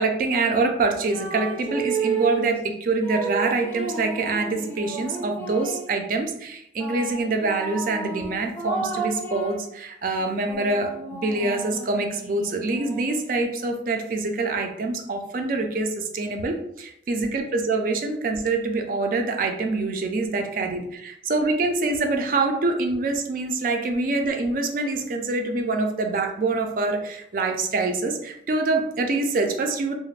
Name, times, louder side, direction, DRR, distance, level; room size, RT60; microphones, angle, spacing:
voice 1, 0.0-29.9, right 3 dB, 50° right, 4 dB, 0.3 m, -25 dB
sound 1, 1.0-2.5 3.0-5.9 6.8-9.7 10.2-13.8, right 4 dB, 10° left, 0.5 m, -32 dB
2.4 x 2.0 x 3.1 m, 0.76 s
head